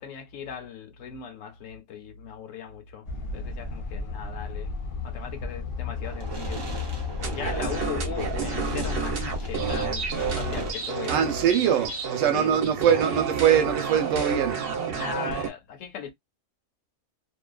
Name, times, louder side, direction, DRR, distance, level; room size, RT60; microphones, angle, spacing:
voice 1, 0.0-4.7 5.0-7.0 7.3-11.2 12.3-12.8 15.0-16.1, left 7 dB, 80° left, 1.0 m, -38 dB
sound 1, 3.0-10.7, left 4 dB, 50° left, 0.7 m, -33 dB
Fireworks, 6.0-12.0, right 2 dB, 25° right, 0.6 m, -40 dB
sound 2, 7.2-15.5, right 6 dB, 55° right, 0.9 m, -30 dB
voice 2, 11.1-14.6, right 8 dB, 80° right, 1.0 m, -23 dB
2.6 x 2.2 x 2.2 m
omnidirectional pair, 1.3 m